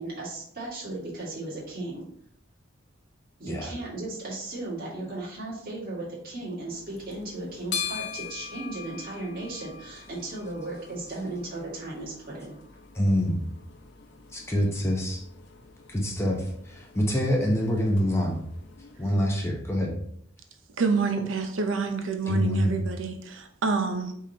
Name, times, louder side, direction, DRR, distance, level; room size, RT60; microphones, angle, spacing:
voice 1, 0.0-2.0 3.4-12.5, right 2 dB, 50° right, -6 dB, 1.8 m, -36 dB
sound 1, 6.7-19.2, left 7 dB, 60° left, 0.6 m, -42 dB
voice 2, 12.9-13.4 14.3-15.2 15.9-18.4 19.0-20.0 22.3-22.8, equal, 15° left, -1 dB, 0.7 m, -25 dB
voice 3, 20.8-24.1, right 4 dB, 75° right, 5 dB, 0.7 m, -27 dB
5.0 x 3.7 x 2.8 m, 0.66 s
head